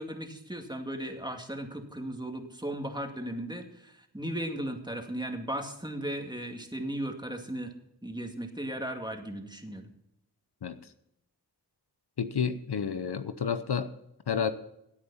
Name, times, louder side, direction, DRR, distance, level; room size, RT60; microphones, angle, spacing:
voice 1, 0.0-7.8 8.0-9.9, right 1 dB, 10° right, 3 dB, 2.3 m, -36 dB
voice 2, 12.2-13.9 14.3-14.5, left 7 dB, 70° left, 11 dB, 0.8 m, -30 dB
17.0 x 8.7 x 4.2 m, 0.81 s
wide cardioid pair, 45°, 41 cm